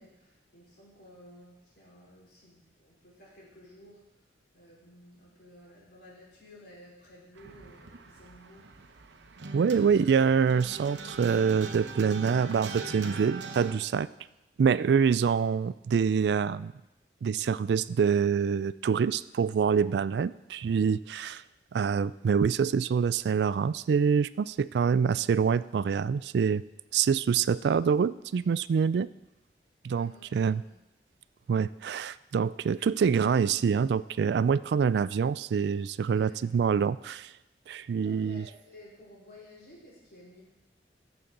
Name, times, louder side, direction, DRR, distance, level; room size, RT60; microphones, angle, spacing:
voice 1, 0.0-4.1 4.5-8.7 29.9-30.7 36.2-36.5 38.0-40.4, left 1 dB, 65° left, -6 dB, 4.4 m, -54 dB
sound 1, 7.4-13.7, right 3 dB, 90° right, 0.8 m, -41 dB
voice 2, 9.5-14.1 14.6-16.7 17.2-21.4 21.7-26.6 26.9-29.1 29.8-30.6 31.5-37.3 37.7-38.4, right 6 dB, 70° right, 17 dB, 0.3 m, -26 dB
15.5 x 6.9 x 3.8 m, 0.94 s
head